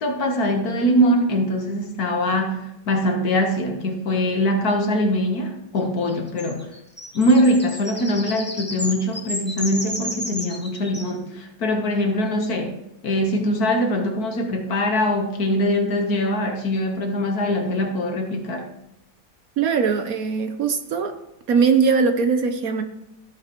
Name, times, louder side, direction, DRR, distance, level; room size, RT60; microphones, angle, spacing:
voice 1, 0.0-6.7 7.1-18.7, equal, 60° left, 4 dB, 1.6 m, -22 dB
sound 1, 6.1-11.2, left 1 dB, 10° left, 0.7 m, -33 dB
voice 2, 19.6-21.1 21.5-22.8, right 5 dB, 60° right, 7 dB, 1.1 m, -20 dB
14.5 x 8.3 x 3.0 m, 0.85 s
omnidirectional pair, 1.9 m